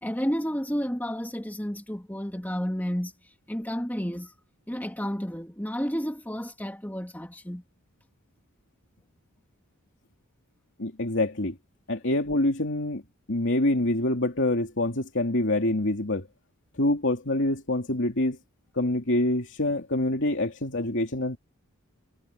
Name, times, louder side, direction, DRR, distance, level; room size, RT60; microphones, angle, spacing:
voice 1, 0.0-4.3 4.7-7.6, equal, 10° left, 2.4 m, -31 dB
voice 2, 10.8-11.6 11.9-13.0 13.3-16.3 16.8-18.4 18.7-21.4, left 1 dB, 55° left, 2.9 m, -26 dB
head